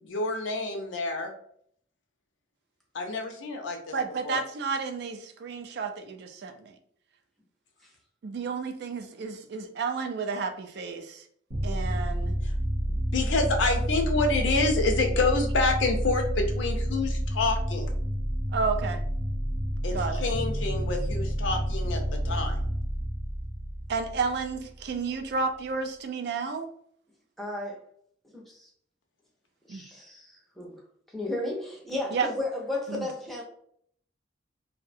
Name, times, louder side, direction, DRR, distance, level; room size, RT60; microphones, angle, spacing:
voice 1, 0.0-1.3 2.9-4.0 4.2-4.4 12.4-12.5 12.9-17.9 19.8-22.6, left 3 dB, 75° left, 4 dB, 0.5 m, -28 dB
voice 2, 3.9-6.8 8.2-11.2 11.6-12.3 18.5-19.0 19.9-20.2 23.9-26.7 29.7-29.8 32.1-32.3 32.9-33.1, right 4 dB, 60° right, 7 dB, 0.3 m, -31 dB
sound 1, 11.5-24.9, equal, 85° right, 0.8 m, -29 dB
sound 2, 20.3-24.0, left 2 dB, 40° right, 0.8 m, -44 dB
voice 3, 27.4-27.8 28.3-28.7 29.7-30.8 31.1-33.4, left 2 dB, ahead, -3 dB, 0.5 m, -34 dB
2.6 x 2.1 x 2.5 m, 0.64 s
head